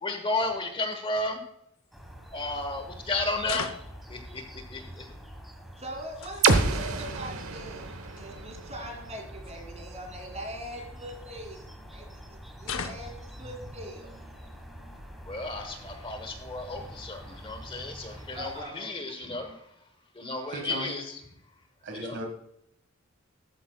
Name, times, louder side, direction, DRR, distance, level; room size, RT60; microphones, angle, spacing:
voice 1, 0.0-1.4 2.3-3.7 4.1-4.4 4.7-5.0 15.3-19.6 20.1-21.2 21.9-22.2, left 2 dB, 25° left, 6 dB, 1.1 m, -33 dB
sound 1, 1.8-2.0 3.4-4.0 5.8-6.6 7.7-7.8 8.0-8.2 9.4-9.5 10.6-11.5 12.6-13.3, left 6 dB, 65° left, 0.8 m, -38 dB
sound 2, 1.9-18.6, equal, ahead, 1.4 m, -46 dB
voice 2, 5.8-7.9 8.1-14.2 18.3-18.9, equal, 30° right, 2 dB, 2.7 m, -42 dB
sound 3, 6.4-10.3, right 4 dB, 85° right, 1.1 m, -29 dB
voice 3, 20.5-21.0 21.8-22.3, right 1 dB, 60° right, 4 dB, 1.7 m, -36 dB
12.5 x 9.5 x 2.3 m, 0.76 s
head